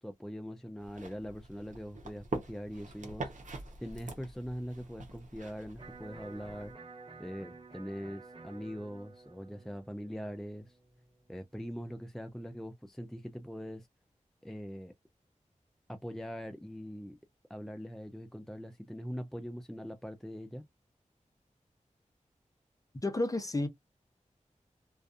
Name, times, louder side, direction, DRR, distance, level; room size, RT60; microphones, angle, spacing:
voice 1, 0.0-6.7 7.2-10.8 11.3-13.9 14.4-14.9 15.9-17.2 17.5-20.7, equal, 5° left, 0.4 m, -42 dB
sound 1, 0.8-6.7, right 3 dB, 70° right, 0.8 m, -44 dB
Electric guitar, 5.8-11.8, right 3 dB, 40° right, 1.3 m, -52 dB
voice 2, 23.0-23.7, left 2 dB, 25° left, 0.7 m, -31 dB
2.5 x 2.4 x 2.4 m
wide cardioid pair, 50°, 13 cm